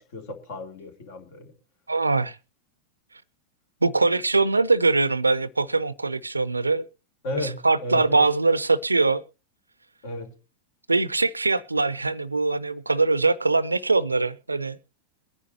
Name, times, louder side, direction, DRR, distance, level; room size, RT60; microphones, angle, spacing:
voice 1, 0.0-1.5 7.2-8.3 10.0-10.3, left 2 dB, 50° left, 2.7 m, -34 dB
voice 2, 1.9-2.4 3.8-6.8 7.4-9.2 10.9-14.8, right 3 dB, 80° right, 0.6 m, -22 dB
23.0 x 10.0 x 2.8 m
figure-of-eight pair, 90°, 0 cm